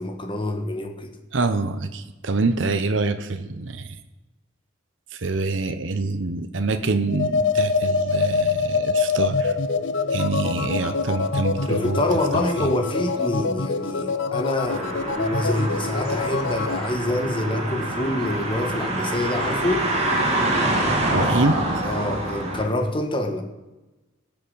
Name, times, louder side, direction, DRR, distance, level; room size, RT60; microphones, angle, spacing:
voice 1, 0.0-1.2 11.7-19.9 21.8-23.4, left 1 dB, 25° left, 1.4 m, -26 dB
voice 2, 1.3-4.0 5.1-9.6 10.1-12.0 12.6-12.7 21.1-21.6, right 3 dB, 80° right, 0.8 m, -25 dB
sound 1, 7.1-16.9, left 4 dB, 75° left, 0.6 m, -25 dB
sound 2, 14.7-22.7, right 1 dB, 35° right, 2.6 m, -26 dB
18.0 x 7.0 x 5.6 m
head